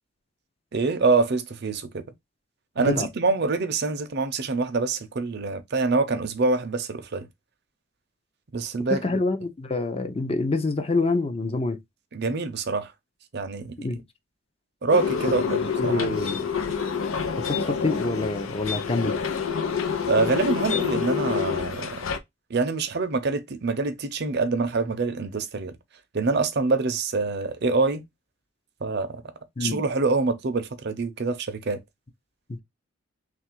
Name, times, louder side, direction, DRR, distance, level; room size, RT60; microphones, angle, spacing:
voice 1, 0.7-2.0 2.8-7.3 8.5-9.0 12.1-12.9 13.3-13.9 14.8-16.3 20.1-22.0 22.5-25.8 26.1-28.0 28.8-29.2 29.6-31.8, right 3 dB, 55° right, 0.6 m, -25 dB
voice 2, 8.9-11.8 13.8-14.0 15.8-16.5 17.5-19.2 29.6-29.8 32.5-32.6, left 3 dB, 30° left, 0.5 m, -26 dB
sound 1, 14.9-22.2, left 6 dB, 90° left, 0.6 m, -27 dB
3.2 x 2.5 x 4.4 m
head